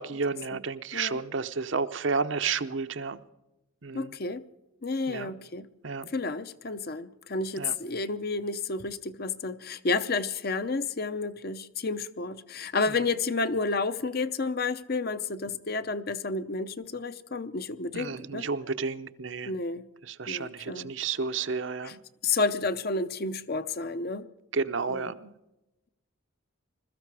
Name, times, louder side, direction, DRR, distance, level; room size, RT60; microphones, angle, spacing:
voice 1, 0.0-3.2 3.8-4.1 5.1-5.3 5.8-6.1 7.6-7.8 17.9-19.5 20.0-22.0 24.5-25.3, right 5 dB, 60° right, 0.8 m, -31 dB
voice 2, 3.9-4.4 4.8-5.7 6.1-18.5 19.5-19.8 20.3-20.9 21.8-22.0 22.2-24.3 24.9-25.1, left 3 dB, 45° left, 0.7 m, -31 dB
21.5 x 13.5 x 4.9 m
head